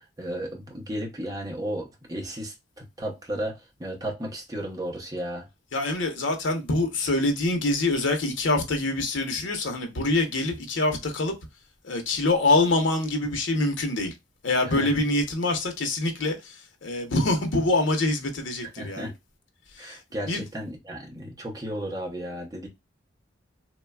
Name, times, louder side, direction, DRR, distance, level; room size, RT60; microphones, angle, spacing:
voice 1, 0.0-5.5 14.6-14.9 18.6-19.1 19.8-22.7, right 1 dB, 20° right, 0.7 m, -34 dB
voice 2, 5.7-11.3 11.8-14.1 14.4-16.5 16.8-19.1 19.8-20.0 20.2-20.4, left 2 dB, 80° left, 0.7 m, -25 dB
3.1 x 2.2 x 2.2 m
head